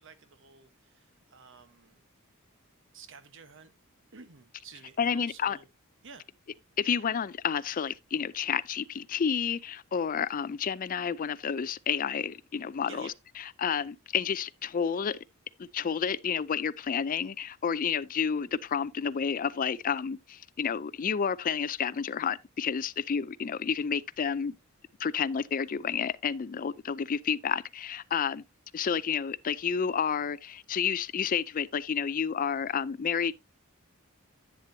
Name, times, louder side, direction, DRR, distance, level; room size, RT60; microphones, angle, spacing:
voice 1, 0.0-2.1 2.9-3.7 4.1-5.7 6.0-6.3 12.8-13.1, right 5 dB, 60° right, 1.2 m, -51 dB
voice 2, 5.0-5.6 6.8-13.1 13.6-15.2 15.6-24.6 25.0-28.4 28.7-33.3, left 7 dB, 40° left, 0.4 m, -30 dB
10.5 x 7.4 x 2.7 m
head